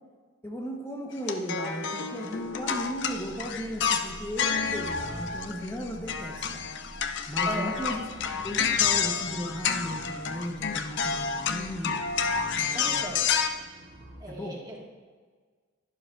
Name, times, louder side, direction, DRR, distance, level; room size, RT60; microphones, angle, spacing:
voice 1, 0.4-6.6 7.3-8.1 8.4-12.0 12.6-13.1 14.3-14.6, equal, 15° left, 0 dB, 1.1 m, -36 dB
sound 1, 1.2-5.8 6.1-13.5, left 6 dB, 60° left, 0.5 m, -29 dB
sound 2, 1.5-14.2, equal, 60° right, 2.4 m, -46 dB
voice 2, 7.4-7.8 12.4-13.2 14.2-14.8, right 1 dB, 20° right, -3 dB, 1.8 m, -38 dB
11.5 x 11.0 x 2.5 m, 1.5 s
head